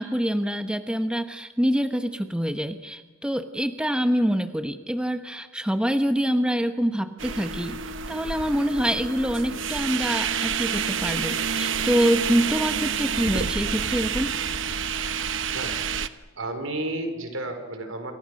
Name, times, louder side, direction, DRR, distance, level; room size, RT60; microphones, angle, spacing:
voice 1, 0.0-7.8 8.1-14.3, equal, 5° right, 8 dB, 1.0 m, -25 dB
sound 1, 7.2-16.1, right 6 dB, 65° right, 1.0 m, -28 dB
voice 2, 15.2-15.8 16.2-18.1, right 2 dB, 80° right, 7 dB, 4.6 m, -32 dB
28.0 x 27.5 x 6.5 m, 1.3 s
head